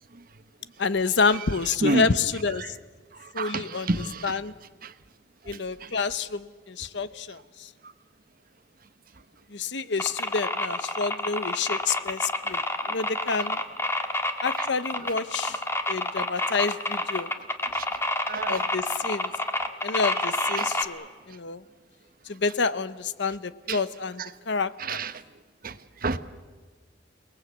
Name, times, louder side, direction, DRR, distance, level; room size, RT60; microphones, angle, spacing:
voice 1, 0.8-2.7 3.3-3.9 4.2-4.5 5.5-7.7 9.5-12.6 12.9-13.6 14.4-15.6 15.9-17.3 18.5-19.3 19.8-21.6 22.3-25.0, left 4 dB, 70° left, 0.9 m, -28 dB
voice 2, 3.2-4.4 4.8-4.9 5.5-5.9 11.9-12.0 17.7-17.8 18.3-18.6 20.4-20.7 23.7-23.8 24.2-24.3 24.8-25.1 25.6-25.8 26.0-26.2, right 2 dB, 50° right, 1.1 m, -29 dB
sound 1, 10.0-20.8, left 2 dB, 15° left, 1.6 m, -28 dB
29.0 x 19.5 x 8.3 m
head